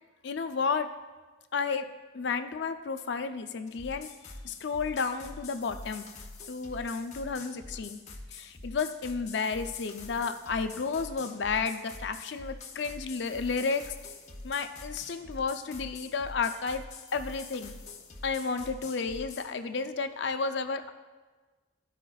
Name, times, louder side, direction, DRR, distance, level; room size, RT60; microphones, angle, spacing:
voice 1, 0.2-0.9 1.5-1.9 2.1-4.1 4.4-6.1 6.5-8.0 8.3-13.9 14.4-16.8 17.1-17.7 18.2-20.9, left 5 dB, 60° left, 8 dB, 0.5 m, -32 dB
sound 1, 3.7-19.5, left 3 dB, 35° left, 0.8 m, -45 dB
13.5 x 4.9 x 2.3 m, 1.3 s
head